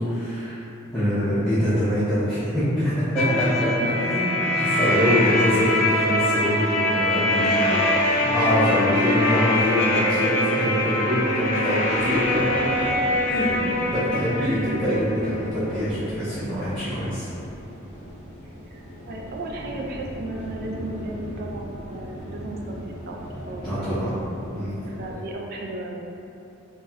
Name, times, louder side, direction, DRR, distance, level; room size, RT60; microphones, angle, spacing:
voice 1, 0.1-0.6 0.9-3.7 4.1-12.9 13.2-13.7 13.9-17.3 23.6-24.1 24.5-24.8, equal, 5° left, -15 dB, 0.6 m, -24 dB
sound 1, 3.2-15.8, left 1 dB, 75° left, 0.4 m, -23 dB
voice 2, 3.3-3.9 4.7-5.2 7.3-7.9 10.9-11.4 13.3-13.8 14.2-14.8 18.7-24.1 24.9-26.0, right 1 dB, 45° right, -1 dB, 0.3 m, -35 dB
sound 2, 11.9-25.1, equal, 25° right, 0.9 m, -38 dB
4.1 x 2.1 x 2.2 m, 2.7 s
head